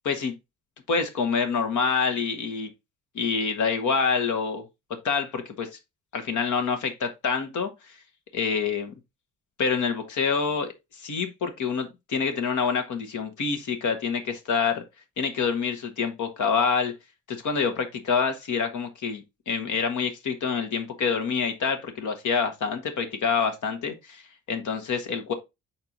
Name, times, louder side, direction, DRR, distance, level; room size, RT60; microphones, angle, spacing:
voice 1, 0.0-0.4 0.9-2.7 3.1-4.6 5.0-5.7 6.1-7.7 8.3-8.9 9.6-10.7 11.0-14.8 15.2-16.9 17.3-24.2 24.5-25.3, left 5 dB, 55° left, 1.6 m, -26 dB
5.8 x 4.3 x 4.0 m
hypercardioid pair, 55°, 35 cm